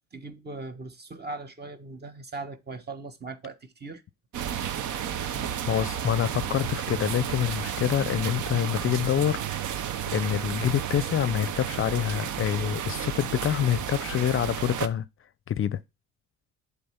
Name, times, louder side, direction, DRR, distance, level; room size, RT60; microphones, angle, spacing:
voice 1, 0.1-4.0, right 3 dB, 35° right, 1.2 m, -39 dB
sound 1, 4.3-14.9, right 9 dB, 80° right, 0.8 m, -32 dB
voice 2, 5.7-9.9 10.1-15.1 15.5-15.8, left 10 dB, 45° left, 0.5 m, -26 dB
7.8 x 3.6 x 5.7 m
cardioid pair, 90°, 30 cm